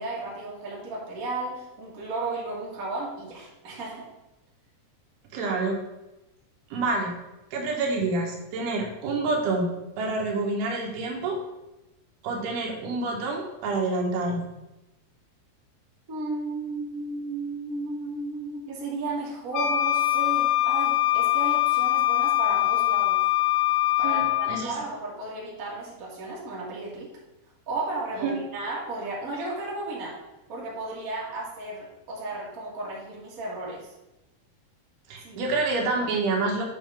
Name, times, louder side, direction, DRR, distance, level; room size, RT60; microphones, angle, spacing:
voice 1, 0.0-4.0 16.1-23.2 24.0-27.1 27.7-30.1 30.5-33.8 35.2-35.4, right 2 dB, 30° right, -5 dB, 1.7 m, -34 dB
voice 2, 5.3-5.7 6.7-7.1 7.5-11.4 12.2-14.5 24.0-24.8 28.2-28.3 35.1-36.6, right 3 dB, 75° right, 0 dB, 3.0 m, -27 dB
Wind instrument woodwind instrument, 19.5-24.7, left 14 dB, 85° left, 2.8 m, -23 dB
9.0 x 5.6 x 3.7 m, 0.96 s
omnidirectional pair, 4.7 m